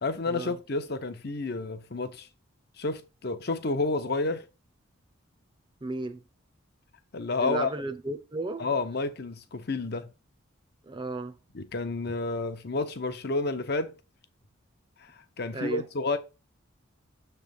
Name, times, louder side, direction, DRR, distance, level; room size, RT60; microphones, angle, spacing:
voice 1, 0.0-2.3 2.8-4.5 7.1-7.7 8.6-10.1 11.5-14.0 15.0-16.2, left 3 dB, 50° left, 0.8 m, -30 dB
voice 2, 5.8-6.3 7.4-8.7 10.8-11.4 15.5-15.8, right 2 dB, 25° right, 0.7 m, -34 dB
7.1 x 3.3 x 5.3 m
head